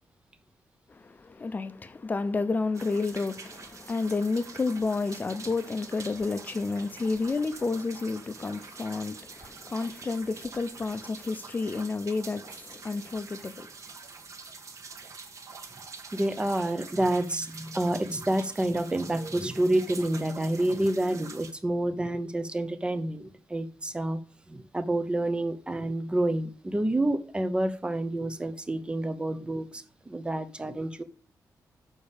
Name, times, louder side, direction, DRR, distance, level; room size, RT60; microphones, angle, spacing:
voice 1, 0.9-13.7, left 3 dB, 25° left, 0.7 m, -30 dB
sound 1, 2.7-21.5, right 4 dB, 50° right, 1.2 m, -46 dB
voice 2, 16.1-24.2 24.5-31.0, right 1 dB, 15° right, 0.7 m, -28 dB
6.9 x 5.4 x 7.1 m
wide cardioid pair, 160°, 7 cm